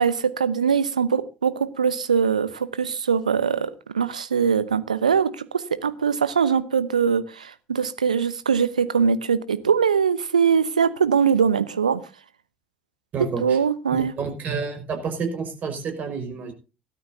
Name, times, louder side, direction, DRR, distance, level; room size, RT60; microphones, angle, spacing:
voice 1, 0.0-12.0 13.4-14.1, right 6 dB, 85° right, 0.8 m, -22 dB
voice 2, 13.1-13.6 13.9-16.5, right 5 dB, 45° right, 5.1 m, -29 dB
17.5 x 12.5 x 2.7 m
figure-of-eight pair, 60°, 4 cm